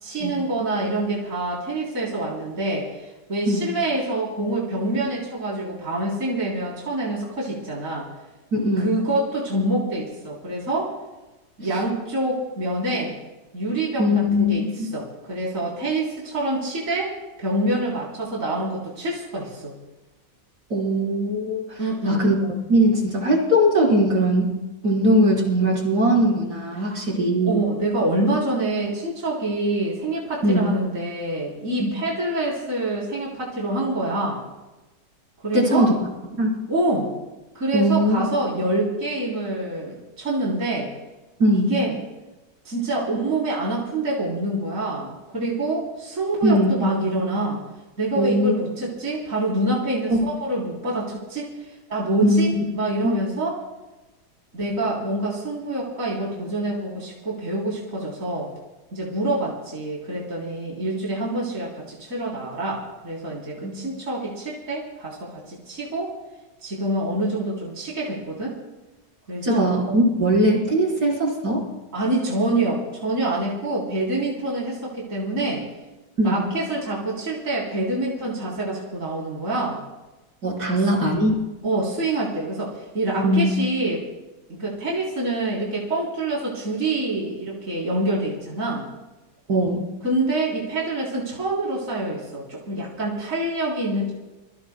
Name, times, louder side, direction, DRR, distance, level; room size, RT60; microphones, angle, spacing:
voice 1, 0.0-8.1 8.8-10.9 11.6-13.1 13.5-17.1 17.4-19.7 21.8-22.2 26.8-27.0 27.4-34.4 35.4-35.9 36.7-37.1 37.5-40.9 41.5-41.9 42.7-47.6 48.0-53.6 54.5-58.5 58.9-66.1 66.6-68.6 69.3-69.7 71.9-75.6 76.2-79.8 80.6-80.8 81.6-84.0 84.5-88.9 90.0-94.1, right 1 dB, 50° right, -5 dB, 3.9 m, -26 dB
voice 2, 8.5-8.9 14.0-14.9 20.7-22.4 22.7-24.5 24.8-27.6 30.4-30.7 31.8-31.9 35.5-36.0 36.4-36.6 37.7-38.2 41.4-41.8 46.4-46.8 48.2-48.5 50.1-50.3 52.2-52.6 53.0-53.1 63.6-63.7 69.4-71.7 76.2-76.5 80.4-81.4 83.2-83.5 89.5-89.8, equal, 65° right, -3 dB, 4.7 m, -20 dB
27.0 x 22.5 x 2.2 m, 1.1 s
omnidirectional pair, 1.9 m